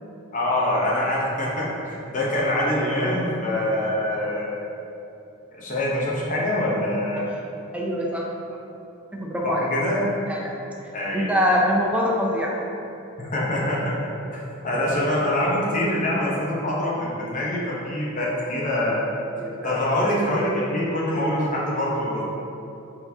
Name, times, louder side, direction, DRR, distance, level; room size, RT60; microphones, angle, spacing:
voice 1, 0.3-4.6 5.6-7.3 9.4-10.1 10.9-11.3 13.2-14.0 14.3-19.1 19.6-22.2, left 1 dB, 35° left, -5 dB, 0.8 m, -24 dB
voice 2, 7.7-8.3 9.1-9.7 10.3-10.5 11.1-12.5 19.4-19.8, equal, 5° right, -3 dB, 0.4 m, -24 dB
4.5 x 3.9 x 2.7 m, 2.8 s
head